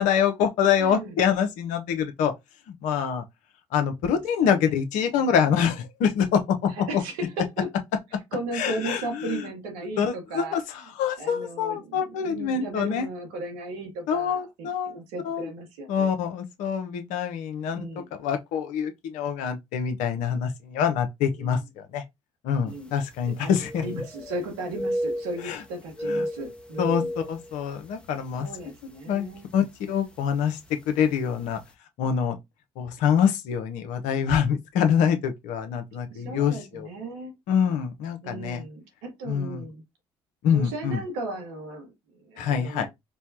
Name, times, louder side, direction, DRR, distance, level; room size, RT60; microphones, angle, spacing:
voice 1, 0.0-2.3 2.7-3.2 3.7-6.9 8.5-9.4 10.0-10.6 11.0-13.1 14.1-15.0 15.2-15.5 15.9-22.0 22.4-24.0 25.4-25.6 26.1-26.2 26.8-28.5 29.1-30.6 30.9-31.6 32.0-32.4 32.8-36.9 37.5-38.6 39.3-39.6 40.4-41.0 42.4-42.9, left 7 dB, 75° left, 0.7 m, -25 dB
voice 2, 0.7-1.1 4.1-4.6 5.2-5.3 6.9-7.7 8.1-10.6 11.2-16.1 17.7-18.1 21.4-21.6 22.6-22.9 23.4-27.1 28.4-29.5 35.9-37.3 38.2-39.8 40.5-42.9, right 2 dB, 80° right, 1.3 m, -36 dB
sound 1, 22.8-22.9 23.2-24.5 24.7-25.6 25.9-28.1 28.5-28.6 29.3-29.5 30.6-30.7 31.0-31.1, equal, 5° left, 0.7 m, -32 dB
4.4 x 2.2 x 2.8 m
hypercardioid pair, 60°, 13 cm